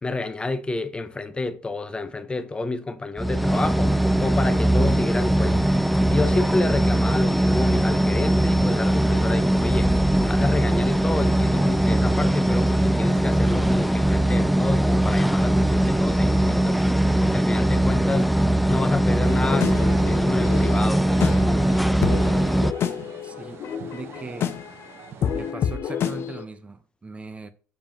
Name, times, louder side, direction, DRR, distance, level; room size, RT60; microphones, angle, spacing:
voice 1, 0.0-3.9 4.2-5.7 6.1-9.9 10.2-18.3 18.7-21.7, left 3 dB, 20° left, 0.7 m, -29 dB
sound 1, 3.2-22.7, right 1 dB, ahead, 0.3 m, -20 dB
sound 2, 19.2-26.4, left 8 dB, 55° left, 0.6 m, -29 dB
sound 3, 19.7-25.5, right 6 dB, 55° right, 1.2 m, -44 dB
voice 2, 23.2-24.6 25.3-27.5, right 3 dB, 25° right, 0.7 m, -39 dB
6.8 x 5.2 x 3.0 m
supercardioid pair, 80°, 5 cm